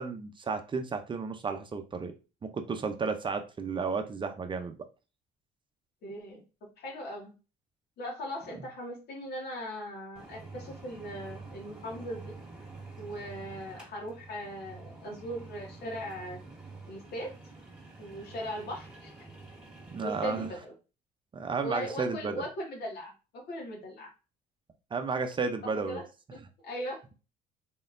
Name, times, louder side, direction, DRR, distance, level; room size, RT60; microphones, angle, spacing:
voice 1, 0.0-2.1 2.4-4.8 19.9-20.5 21.3-22.4 24.9-26.0, right 4 dB, 30° right, 6 dB, 0.6 m, -33 dB
voice 2, 6.0-6.4 6.8-7.3 8.0-12.3 13.0-16.4 16.9-17.3 18.0-19.1 20.0-20.7 21.6-24.1 25.6-26.1 26.3-27.0, equal, 70° left, 0 dB, 1.9 m, -39 dB
sound 1, 10.2-20.5, right 3 dB, 5° right, 1.8 m, -48 dB
4.0 x 3.8 x 2.6 m, 0.32 s
cardioid pair, 110°, 17 cm